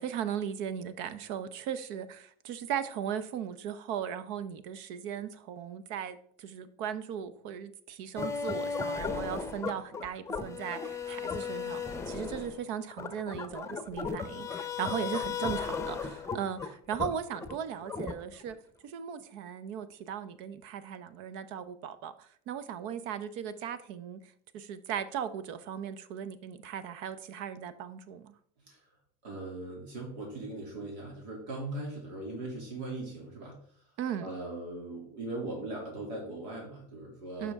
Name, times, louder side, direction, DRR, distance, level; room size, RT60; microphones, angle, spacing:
voice 1, 0.0-18.5 18.8-24.2 24.5-28.3 34.0-34.3 37.4-37.5, right 8 dB, 65° right, 0.8 m, -37 dB
sound 1, 8.2-18.5, left 5 dB, 15° left, 0.8 m, -36 dB
voice 2, 29.2-33.6 34.2-37.5, right 2 dB, 85° right, 2.9 m, -39 dB
9.5 x 5.8 x 3.6 m
supercardioid pair, 120°, 21 cm